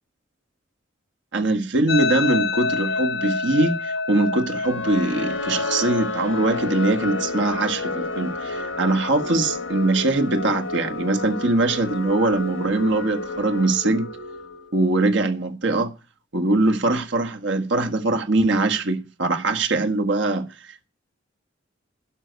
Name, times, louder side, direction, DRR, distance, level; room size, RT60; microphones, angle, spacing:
voice 1, 1.3-14.1 14.7-15.9 16.3-20.9, right 2 dB, 65° right, 1.6 m, -22 dB
sound 1, 1.9-10.9, left 3 dB, 60° left, 0.9 m, -30 dB
sound 2, 4.6-14.8, left 3 dB, 75° left, 1.4 m, -31 dB
12.0 x 5.9 x 9.2 m
head